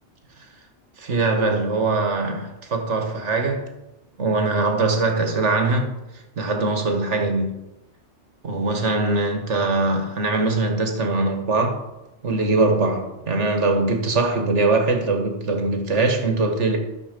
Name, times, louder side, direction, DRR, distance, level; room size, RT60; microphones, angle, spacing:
voice 1, 1.0-3.7 4.2-5.9 6.4-7.6 8.4-11.8 12.2-16.8, right 3 dB, 85° right, 1.8 m, -22 dB
12.5 x 6.4 x 5.2 m
omnidirectional pair, 1.2 m